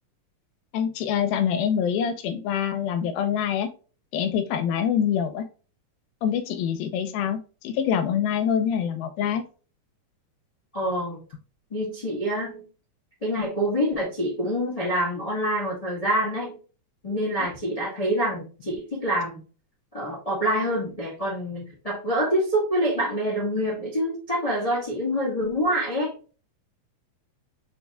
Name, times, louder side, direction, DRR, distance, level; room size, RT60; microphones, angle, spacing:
voice 1, 0.7-3.7 4.1-5.4 6.2-9.4, left 8 dB, 90° left, 8 dB, 2.6 m, -25 dB
voice 2, 10.7-11.2 11.7-12.6 13.2-16.6 17.0-19.4 19.9-26.3, equal, 35° left, -5 dB, 0.5 m, -26 dB
5.3 x 4.2 x 2.3 m, 0.36 s
omnidirectional pair, 4.1 m